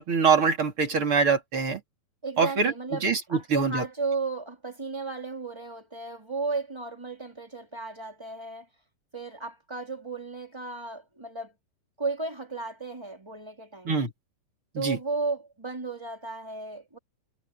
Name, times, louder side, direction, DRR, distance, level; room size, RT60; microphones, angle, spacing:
voice 1, 0.0-1.8 2.4-3.8 13.9-14.1 14.7-15.0, right 5 dB, 35° right, 3.7 m, -24 dB
voice 2, 2.2-8.7 9.1-11.5 12.0-14.0 14.7-17.0, right 3 dB, 5° right, 3.3 m, -34 dB
omnidirectional pair, 4.3 m